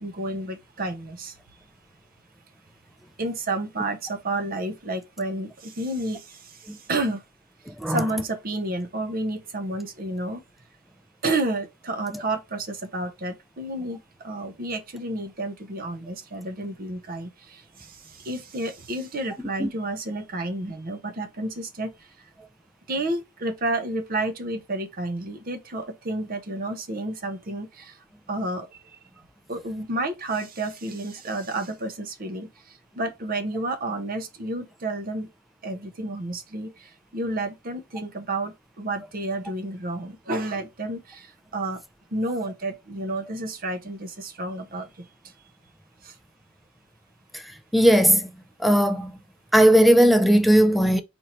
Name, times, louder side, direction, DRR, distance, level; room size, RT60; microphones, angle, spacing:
voice 1, 0.0-1.3 3.2-6.2 6.9-7.2 7.9-10.4 11.2-14.0 14.2-17.6 18.2-21.9 22.9-27.9 28.3-28.7 29.5-32.5 33.0-35.3 35.6-36.7 37.1-41.3 41.5-41.8 42.1-45.1, right 2 dB, 45° right, 0.8 m, -30 dB
voice 2, 7.7-8.0 19.6-19.7 47.7-48.3 48.6-49.1 49.5-51.0, equal, ahead, 0.5 m, -17 dB
4.4 x 2.6 x 4.3 m
head